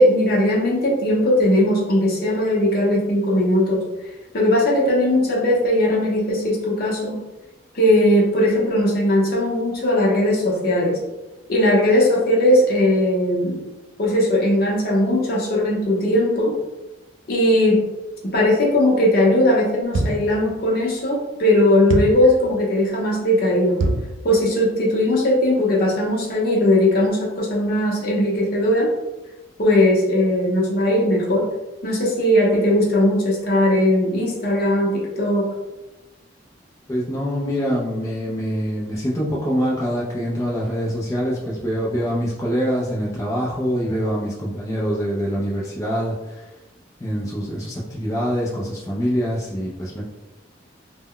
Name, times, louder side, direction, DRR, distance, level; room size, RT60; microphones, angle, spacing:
voice 1, 0.0-3.9 4.3-7.2 7.7-11.0 11.5-13.6 14.0-16.5 17.3-17.8 18.3-23.8 24.2-28.9 29.6-31.5 31.8-35.5, left 1 dB, 55° left, -2 dB, 0.7 m, -18 dB
sound 1, 19.9-20.4 21.9-22.3 23.8-24.2, right 2 dB, 85° right, 0.3 m, -23 dB
voice 2, 36.9-46.5 47.0-50.1, equal, 15° left, -5 dB, 0.4 m, -24 dB
2.1 x 2.0 x 3.6 m, 1.0 s
head